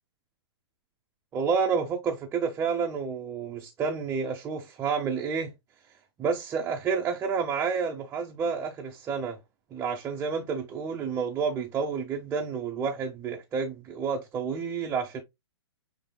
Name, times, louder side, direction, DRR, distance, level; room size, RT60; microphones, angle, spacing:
voice 1, 1.3-5.5 6.2-9.4 9.7-15.2, right 5 dB, 20° right, 0.7 m, -29 dB
6.7 x 3.3 x 2.2 m
hypercardioid pair, 130°, 14 cm